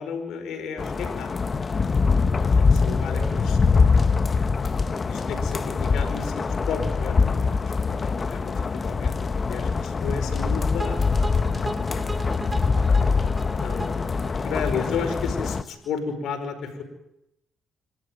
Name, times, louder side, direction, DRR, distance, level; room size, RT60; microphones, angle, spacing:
voice 1, 0.0-1.4 2.1-2.3 2.6-3.6 5.1-8.0 8.3-8.5 8.8-11.0 13.5-16.8, left 6 dB, 75° left, 6 dB, 5.1 m, -33 dB
sound 1, 0.8-15.6, left 4 dB, 40° left, 1.1 m, -23 dB
voice 2, 2.8-3.4 3.6-4.2 10.0-10.7 11.9-14.0 14.4-14.6, right 3 dB, 45° right, 1 dB, 6.1 m, -46 dB
sound 2, 10.8-15.9, right 1 dB, 20° right, 2.6 m, -36 dB
26.5 x 13.0 x 9.3 m, 0.84 s
supercardioid pair, 65°, 0 cm